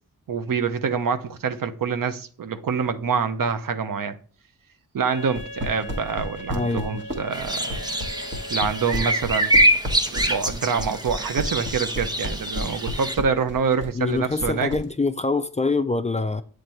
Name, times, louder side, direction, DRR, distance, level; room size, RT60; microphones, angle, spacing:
voice 1, 0.3-4.2 4.9-7.8 8.5-9.6 10.1-14.7, right 6 dB, 65° right, 0.7 m, -26 dB
Wind instrument woodwind instrument, 5.0-9.5, left 1 dB, 35° left, 0.9 m, -40 dB
sound 1, 5.2-14.8, equal, 30° right, 1.3 m, -32 dB
voice 2, 6.5-6.8 13.9-16.4, left 3 dB, 20° left, 0.4 m, -24 dB
sound 2, 7.3-13.2, right 1 dB, 10° right, 0.8 m, -24 dB
7.7 x 3.3 x 4.4 m
cardioid pair, 55°, 37 cm